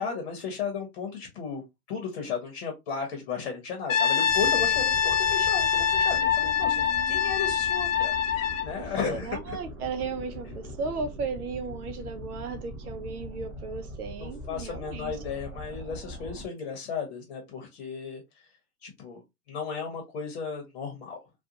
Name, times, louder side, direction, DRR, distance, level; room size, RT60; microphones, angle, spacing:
voice 1, 0.0-1.6 1.9-9.6 14.2-18.2 18.8-19.2 19.5-21.2, left 5 dB, 40° left, 0.9 m, -34 dB
Brass instrument, 3.9-8.7, left 8 dB, 55° left, 0.6 m, -24 dB
sound 1, 4.3-16.4, equal, 5° right, 0.4 m, -41 dB
voice 2, 6.6-7.4 9.0-15.2, right 4 dB, 70° right, 0.6 m, -35 dB
2.5 x 2.3 x 2.7 m
hypercardioid pair, 140°, 46 cm